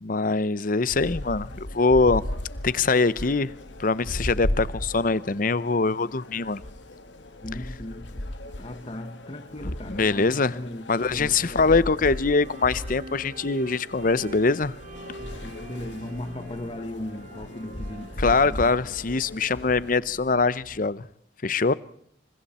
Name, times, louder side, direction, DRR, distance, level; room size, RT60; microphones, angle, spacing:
voice 1, 0.0-2.2 2.6-3.5 3.8-6.6 9.9-10.6 10.9-14.8 18.2-21.1 21.4-21.7, left 4 dB, 45° left, 0.8 m, -23 dB
sound 1, 0.9-20.0, left 1 dB, 85° left, 2.5 m, -36 dB
voice 2, 7.4-11.8 15.2-18.7, left 1 dB, 30° left, 1.2 m, -38 dB
sound 2, 10.9-20.8, right 2 dB, 45° right, 1.8 m, -45 dB
28.0 x 25.0 x 4.3 m
head